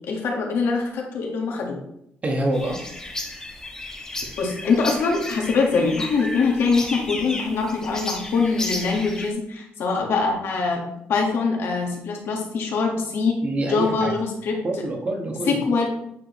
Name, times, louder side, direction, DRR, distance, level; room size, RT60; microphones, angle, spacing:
voice 1, 0.1-1.8 4.4-10.8 11.1-14.6 15.5-15.8, left 4 dB, 70° left, 1 dB, 1.6 m, -23 dB
voice 2, 2.2-2.8 13.4-14.1 14.6-15.6, right 1 dB, 35° right, 1 dB, 1.3 m, -26 dB
sound 1, 2.5-9.3, left 2 dB, 15° left, 1.1 m, -33 dB
8.6 x 4.6 x 3.1 m, 0.77 s
cardioid pair, 125°, 4 cm